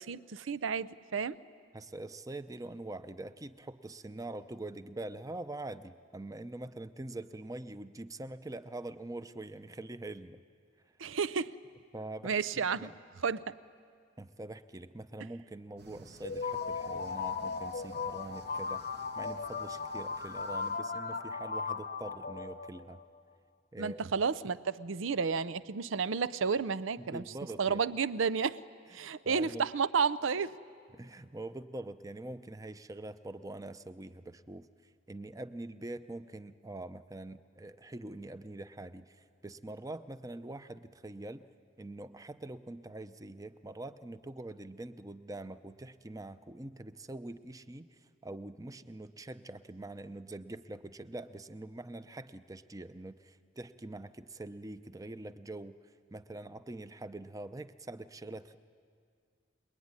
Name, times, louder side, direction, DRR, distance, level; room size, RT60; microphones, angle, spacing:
voice 1, 0.0-1.4 11.0-11.5 12.2-12.9 13.2-13.6 23.8-27.2 27.6-28.6 28.9-30.6, right 5 dB, 85° right, 16 dB, 0.6 m, -31 dB
voice 2, 1.7-10.4 11.9-12.9 14.2-23.0 23.7-24.0 27.0-27.8 28.9-29.7 30.9-34.7 35.1-41.5 41.8-55.8 56.1-58.6, right 2 dB, 20° right, 12 dB, 0.7 m, -44 dB
sound 1, 15.8-20.8, right 3 dB, 55° right, 1.2 m, -56 dB
sound 2, 16.2-23.0, left 5 dB, 50° left, 0.8 m, -37 dB
25.0 x 21.5 x 9.7 m, 2.2 s
head